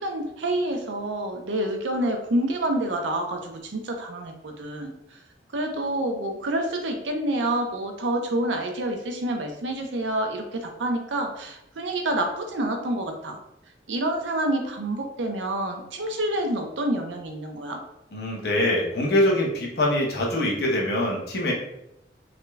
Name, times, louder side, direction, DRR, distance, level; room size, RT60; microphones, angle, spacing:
voice 1, 0.0-5.2 5.5-13.4 13.9-17.8, right 1 dB, 90° right, 4 dB, 0.6 m, -28 dB
voice 2, 18.1-21.5, left 1 dB, 60° left, -2 dB, 0.9 m, -23 dB
3.6 x 2.2 x 3.2 m, 0.83 s
head